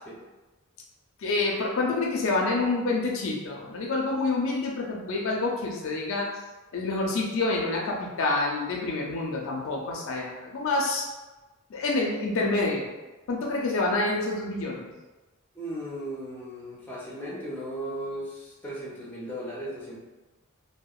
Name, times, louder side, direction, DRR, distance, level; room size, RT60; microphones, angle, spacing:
voice 1, 1.2-6.3 6.7-11.0 11.7-12.9 13.3-14.9, left 3 dB, 65° left, -1 dB, 0.4 m, -27 dB
voice 2, 15.5-20.0, right 1 dB, 10° left, -6 dB, 0.5 m, -36 dB
2.8 x 2.0 x 2.3 m, 1.1 s
head